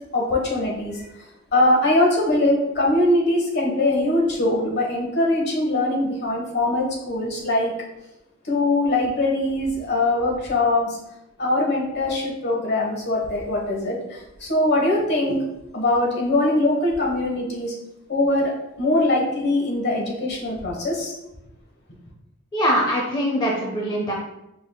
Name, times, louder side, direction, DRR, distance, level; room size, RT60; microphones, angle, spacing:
voice 1, 0.1-1.0 1.5-7.7 8.4-11.0 11.4-15.4 15.7-17.7 18.1-18.5 18.8-21.1, left 2 dB, 55° left, -1 dB, 1.1 m, -22 dB
voice 2, 22.5-24.1, equal, 20° left, -2 dB, 0.5 m, -22 dB
5.2 x 3.5 x 2.2 m, 0.90 s
head